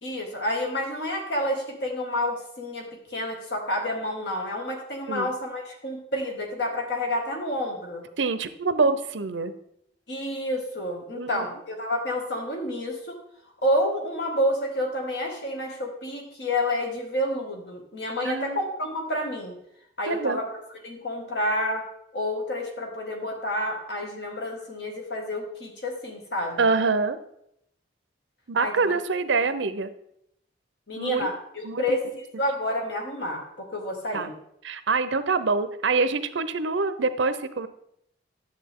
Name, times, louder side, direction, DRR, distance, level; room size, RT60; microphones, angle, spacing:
voice 1, 0.0-8.0 10.1-13.2 13.6-19.6 20.0-20.5 20.8-21.8 22.1-26.7 28.6-29.0 30.9-32.1 32.4-34.3, left 1 dB, 65° left, 1 dB, 2.1 m, -29 dB
voice 2, 8.2-9.5 11.1-11.4 18.2-18.6 20.1-20.4 26.6-27.2 28.5-29.9 31.0-31.3 31.6-32.0 34.1-34.3 34.6-37.7, right 4 dB, 85° right, 12 dB, 0.7 m, -25 dB
10.5 x 7.5 x 3.7 m, 0.76 s
head